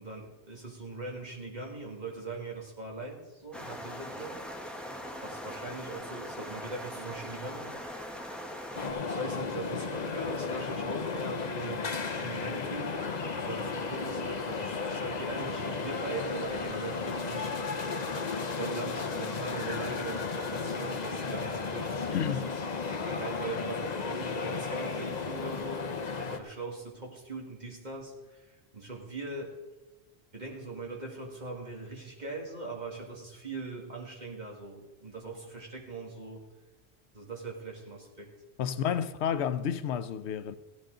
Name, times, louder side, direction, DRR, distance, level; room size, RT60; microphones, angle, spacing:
voice 1, 0.0-4.4 5.2-8.2 9.1-11.9 12.1-13.1 13.4-17.7 18.6-20.2 20.5-22.6 23.1-29.6 30.3-36.4 37.1-38.3, right 2 dB, 40° right, 2.1 m, -41 dB
sound 1, 3.5-8.9, equal, ahead, 1.1 m, -41 dB
sound 2, 8.8-26.4, left 4 dB, 45° left, 0.9 m, -34 dB
voice 2, 22.1-22.5 38.6-40.5, left 8 dB, 85° left, 0.9 m, -30 dB
15.0 x 11.0 x 3.8 m
omnidirectional pair, 1.1 m